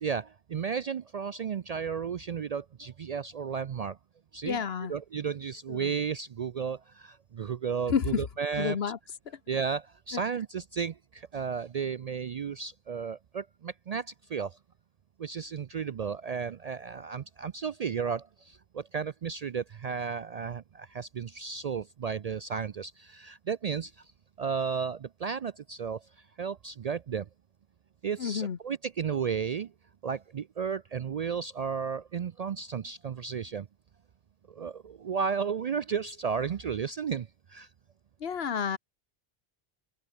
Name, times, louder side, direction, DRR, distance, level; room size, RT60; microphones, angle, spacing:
voice 1, 0.0-4.0 4.3-4.6 4.9-8.8 9.5-14.6 15.2-24.1 24.4-26.1 26.4-27.3 28.0-29.7 30.0-33.7 34.5-37.7, right 6 dB, 55° right, 0.4 m, -33 dB
voice 2, 4.4-4.9 5.7-5.9 7.9-8.3 8.5-9.0 9.3-9.4 10.1-10.2 28.2-28.6 38.2-38.8, left 7 dB, 70° left, 1.3 m, -30 dB
open air
omnidirectional pair, 1.1 m